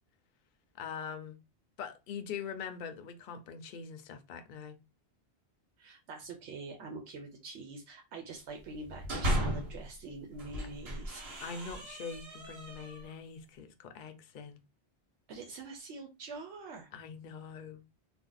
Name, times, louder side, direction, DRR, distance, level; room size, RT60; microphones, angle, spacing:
voice 1, 0.8-1.4 1.8-4.8 11.4-14.6 16.9-17.8, left 6 dB, 55° left, 0.6 m, -43 dB
voice 2, 5.8-11.4 15.3-16.9, right 3 dB, 85° right, 0.9 m, -45 dB
sound 1, 8.7-9.8 10.3-13.1, equal, 65° right, 1.3 m, -36 dB
2.7 x 2.1 x 3.8 m
omnidirectional pair, 1.1 m